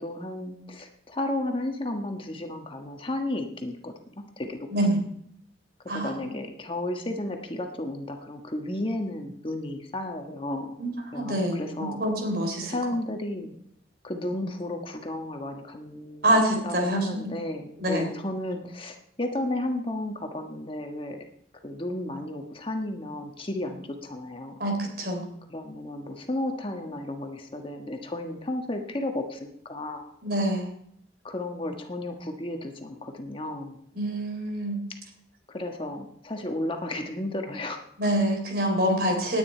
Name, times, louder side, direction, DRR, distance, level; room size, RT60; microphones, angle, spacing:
voice 1, 0.0-3.9 4.4-4.6 5.8-10.7 11.1-12.0 12.7-13.5 14.0-16.3 16.6-21.2 21.6-24.6 25.5-30.1 31.2-33.8 35.5-37.8, left 1 dB, 30° left, 4 dB, 1.4 m, -33 dB
voice 2, 5.9-6.2 10.8-12.8 16.2-17.2 17.8-18.1 24.6-25.2 30.2-30.7 34.0-34.8 38.0-39.4, right 1 dB, 55° right, 3 dB, 3.9 m, -26 dB
19.0 x 9.4 x 4.5 m, 0.71 s
head